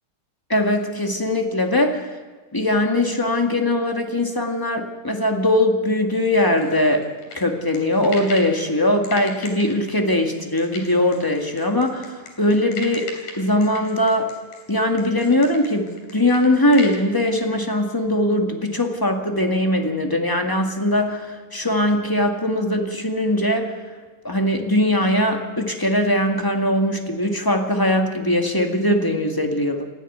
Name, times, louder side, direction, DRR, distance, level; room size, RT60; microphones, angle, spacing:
voice 1, 0.5-2.1 2.5-7.0 7.3-13.1 13.4-14.3 14.7-23.7 24.2-29.9, left 1 dB, 10° left, 3 dB, 1.2 m, -21 dB
sound 1, 6.3-8.6 9.0-17.0, left 5 dB, 85° left, 4.5 m, -37 dB
27.0 x 11.0 x 9.4 m, 1.3 s
omnidirectional pair, 3.4 m